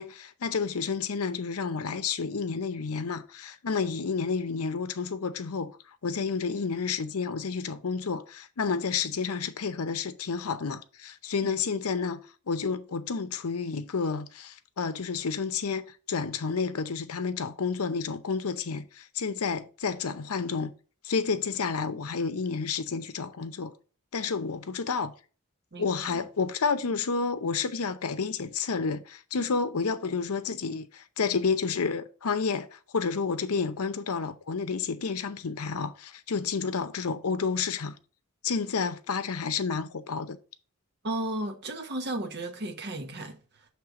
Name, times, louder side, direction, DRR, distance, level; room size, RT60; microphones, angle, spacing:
voice 1, 0.0-5.7 6.0-12.2 12.5-20.7 21.0-23.7 24.1-25.1 25.8-37.9 38.4-40.4, left 5 dB, 70° left, 0.7 m, -30 dB
voice 2, 25.7-26.2 41.0-43.4, right 1 dB, 50° right, 1.0 m, -34 dB
6.5 x 3.3 x 5.7 m
head